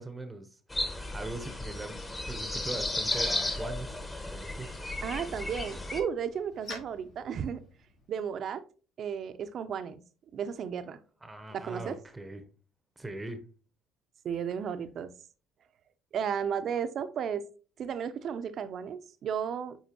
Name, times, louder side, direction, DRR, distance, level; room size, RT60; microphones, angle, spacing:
voice 1, 0.0-2.0 2.3-3.9 4.3-4.7 11.2-12.5 13.0-13.4, right 2 dB, 15° right, 0.8 m, -41 dB
sound 1, 0.7-6.0, left 2 dB, 20° left, 1.3 m, -34 dB
Bicycle, 2.4-8.2, left 2 dB, 65° left, 3.6 m, -49 dB
voice 2, 5.0-7.6 8.1-8.6 9.0-10.0 10.3-11.0 11.5-12.0 14.2-15.1 16.1-17.5 17.8-19.8, right 7 dB, 55° right, 0.6 m, -34 dB
8.2 x 4.3 x 2.9 m
hypercardioid pair, 70°, 0 cm